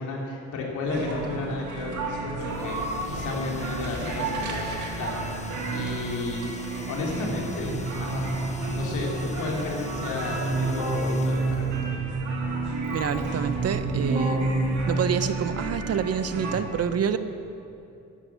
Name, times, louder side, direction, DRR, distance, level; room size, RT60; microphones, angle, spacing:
voice 1, 0.0-4.6 5.0-5.1 5.7-6.4 6.9-8.5 8.7-11.6, left 3 dB, 80° left, -2 dB, 3.2 m, -32 dB
sound 1, 0.9-16.5, right 3 dB, 75° right, 2.3 m, -33 dB
sound 2, 2.4-12.4, left 4 dB, 25° left, 0.9 m, -44 dB
Keyboard (musical), 7.1-15.4, right 2 dB, 20° right, 4.0 m, -29 dB
voice 2, 12.9-14.5 14.9-17.2, right 7 dB, 55° right, 11 dB, 0.8 m, -27 dB
12.5 x 11.0 x 7.3 m, 2.7 s
cardioid pair, 90°, 30 cm